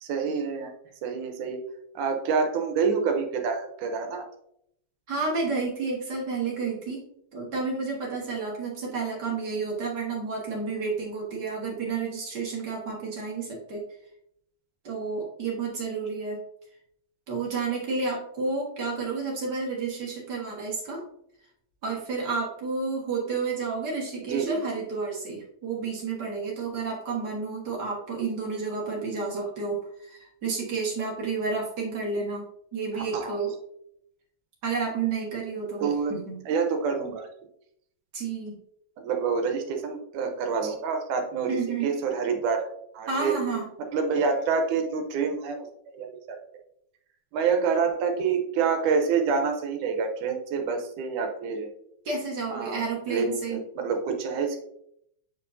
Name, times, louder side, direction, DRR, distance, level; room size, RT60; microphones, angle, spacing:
voice 1, 0.0-0.7 1.0-1.6 2.0-4.2 24.3-24.6 32.9-33.3 35.8-36.1 36.4-37.3 39.0-42.7 42.9-43.4 43.9-45.7 45.9-46.4 47.3-51.7 52.5-52.8 53.1-54.6, right 5 dB, 80° right, 4 dB, 2.3 m, -27 dB
voice 2, 5.1-7.0 7.3-13.8 14.8-16.4 17.3-21.0 21.8-32.4 32.7-33.5 34.6-36.4 38.1-38.6 41.5-41.9 43.1-43.6 52.0-53.6, right 4 dB, 45° right, -3 dB, 1.5 m, -31 dB
8.1 x 4.6 x 2.6 m, 0.73 s
omnidirectional pair, 3.6 m